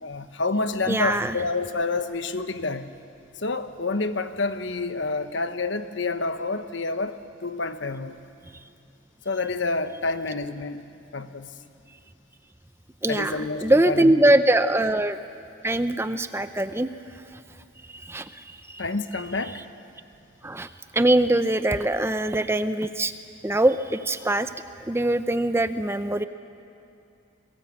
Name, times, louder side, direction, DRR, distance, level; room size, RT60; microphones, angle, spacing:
voice 1, 0.0-3.0 3.4-8.2 9.2-10.8 11.1-11.5 13.1-14.1 18.8-19.6, left 3 dB, 65° left, 9 dB, 1.2 m, -28 dB
voice 2, 0.9-1.4 13.0-15.2 15.6-16.9 18.1-18.3 18.7-18.8 20.4-23.1 23.4-24.5 24.9-26.2, right 1 dB, 10° right, 10 dB, 0.6 m, -22 dB
30.0 x 22.0 x 8.6 m, 2.5 s
head